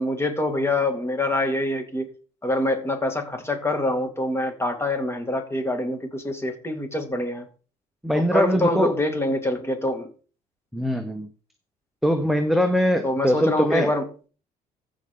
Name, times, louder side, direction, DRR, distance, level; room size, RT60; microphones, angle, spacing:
voice 1, 0.0-2.1 2.4-7.5 8.1-10.1 13.0-14.3, left 1 dB, 15° left, 5 dB, 2.4 m, -25 dB
voice 2, 8.0-8.9 10.7-11.3 12.0-13.9, equal, ahead, 6 dB, 1.0 m, -22 dB
14.5 x 5.2 x 3.9 m, 0.37 s
cardioid pair, 110°, 17 cm